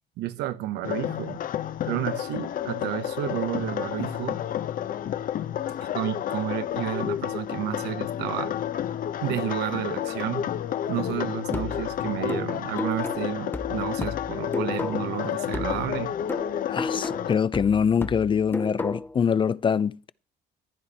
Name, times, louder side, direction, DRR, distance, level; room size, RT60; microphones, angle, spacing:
voice 1, 0.2-1.4 1.8-4.4 5.9-8.5 9.2-10.5 10.9-16.1, right 13 dB, 85° right, 1.1 m, -31 dB
sound 1, 0.8-17.3, left 10 dB, 55° left, 0.9 m, -30 dB
sound 2, 11.5-15.2 15.5-19.2, left 2 dB, 10° left, 0.9 m, -34 dB
voice 2, 16.6-20.1, left 7 dB, 30° left, 0.5 m, -24 dB
15.0 x 10.5 x 4.2 m
cardioid pair, 110°, 17 cm